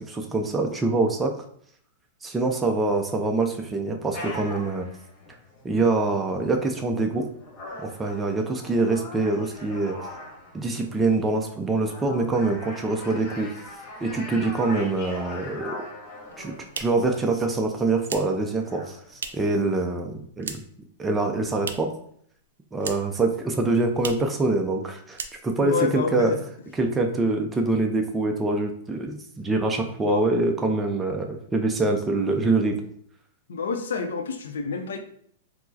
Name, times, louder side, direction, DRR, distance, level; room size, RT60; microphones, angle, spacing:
voice 1, 0.0-1.3 2.2-4.9 5.6-7.3 7.8-10.0 10.5-13.5 14.0-15.7 16.4-20.6 21.0-21.9 22.7-26.3 26.8-32.8, right 3 dB, 10° right, 3 dB, 0.4 m, -25 dB
sound 1, 4.1-19.7, left 2 dB, 35° left, 1.0 m, -41 dB
sound 2, 16.2-19.6 19.9-20.9 21.1-22.1 22.3-23.3 23.5-23.6 23.9-24.4 24.7-24.8 25.1-25.7, right 6 dB, 90° right, 0.3 m, -38 dB
voice 2, 25.6-26.4 30.0-30.2 33.5-35.0, left 5 dB, 85° left, 6 dB, 0.5 m, -28 dB
4.5 x 2.0 x 2.7 m, 0.65 s
hypercardioid pair, 140°, 0 cm